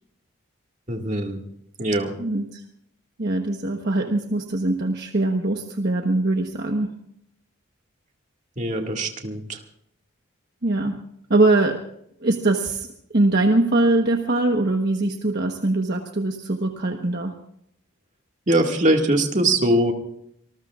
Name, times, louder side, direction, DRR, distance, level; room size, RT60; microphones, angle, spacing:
voice 1, 0.9-1.4 1.8-2.1 8.6-9.6 18.5-19.9, right 1 dB, 35° right, 2 dB, 2.1 m, -21 dB
voice 2, 2.2-2.6 3.2-7.0 10.6-11.0 11.3-11.8 12.2-12.9 13.1-17.3, right 2 dB, 50° right, 3 dB, 1.2 m, -22 dB
26.0 x 20.5 x 2.5 m, 0.72 s
head